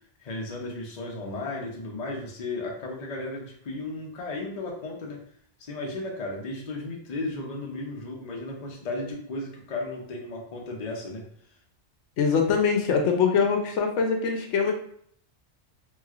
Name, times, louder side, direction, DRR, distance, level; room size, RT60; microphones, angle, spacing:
voice 1, 0.2-5.2 5.6-11.3, left 2 dB, 40° left, -1 dB, 0.7 m, -34 dB
voice 2, 12.2-14.7, left 5 dB, 80° left, 3 dB, 0.9 m, -23 dB
3.0 x 3.0 x 2.4 m, 0.63 s
omnidirectional pair, 1.2 m